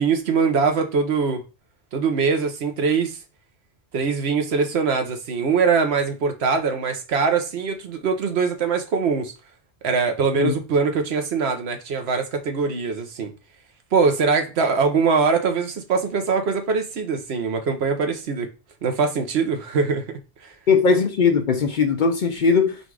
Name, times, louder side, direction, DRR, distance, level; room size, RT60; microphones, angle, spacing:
voice 1, 0.0-1.4 1.9-3.2 3.9-9.3 9.8-13.3 13.9-18.5 18.8-20.1 20.4-20.5, right 5 dB, 75° right, 1.0 m, -22 dB
voice 2, 20.7-22.8, left 5 dB, 55° left, 0.6 m, -19 dB
3.9 x 2.4 x 4.6 m
omnidirectional pair, 1.1 m